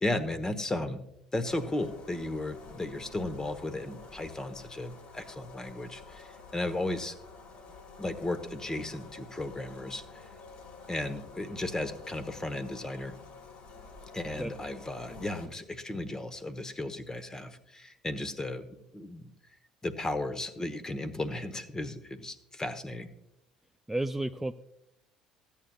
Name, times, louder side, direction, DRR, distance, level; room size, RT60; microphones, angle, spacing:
voice 1, 0.0-1.0 1.3-7.1 8.0-10.0 10.9-13.1 14.1-18.7 18.9-19.3 19.8-23.1, left 2 dB, 20° left, 11 dB, 1.0 m, -35 dB
sound 1, 1.5-15.5, left 4 dB, 55° left, 2.4 m, -49 dB
voice 2, 23.9-24.5, right 1 dB, 5° right, 7 dB, 0.4 m, -32 dB
15.0 x 8.8 x 2.3 m, 0.82 s
figure-of-eight pair, 60°, 3 cm